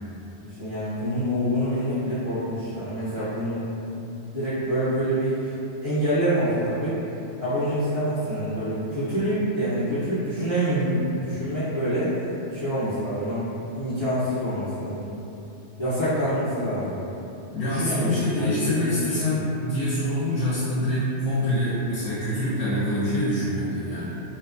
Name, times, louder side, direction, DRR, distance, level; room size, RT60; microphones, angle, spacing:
voice 1, 0.4-3.6 3.9-5.5 5.8-7.0 7.4-12.2 12.5-15.2 15.8-17.0 17.6-18.9, equal, 30° left, -15 dB, 0.6 m, -26 dB
voice 2, 17.5-24.2, left 1 dB, 75° left, -10 dB, 0.9 m, -25 dB
2.8 x 2.2 x 2.4 m, 2.9 s
omnidirectional pair, 1.2 m